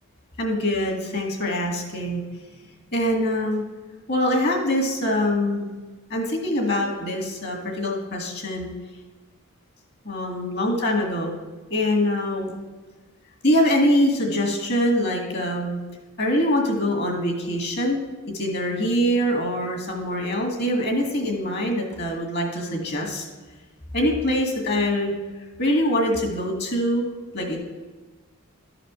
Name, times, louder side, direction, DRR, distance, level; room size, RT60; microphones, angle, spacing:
voice 1, 0.4-2.2 2.9-3.6 4.1-5.7 6.1-8.7 10.1-11.3 11.7-12.5 13.4-15.8 16.2-18.0 18.3-23.3 23.9-25.1 25.6-27.1 27.3-27.6, left 1 dB, 50° left, 2 dB, 1.9 m, -23 dB
12.0 x 5.0 x 6.1 m, 1.3 s
head